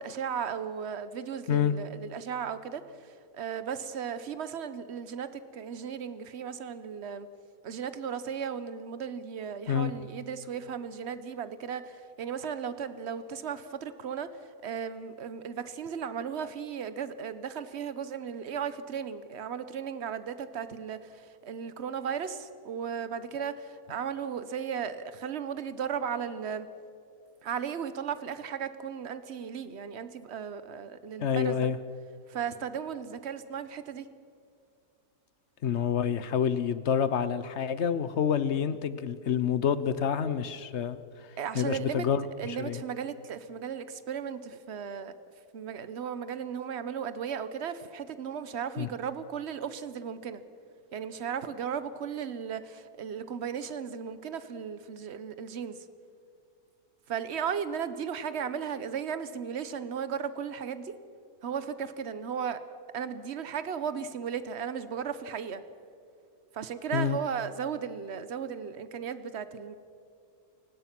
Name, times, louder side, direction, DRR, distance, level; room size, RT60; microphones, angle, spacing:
voice 1, 0.0-7.3 7.6-14.3 14.6-26.7 27.4-31.7 32.3-34.1 41.4-42.1 42.4-45.1 45.5-50.4 50.9-55.8 57.1-61.0 61.4-62.6 62.9-65.6 66.5-69.7, right 7 dB, 50° right, 13 dB, 1.1 m, -36 dB
voice 2, 31.2-31.8 35.6-41.0 41.5-42.8 48.8-48.9 66.9-67.2, left 8 dB, 50° left, 14 dB, 1.0 m, -28 dB
29.0 x 16.5 x 6.1 m, 2.4 s
omnidirectional pair, 1.7 m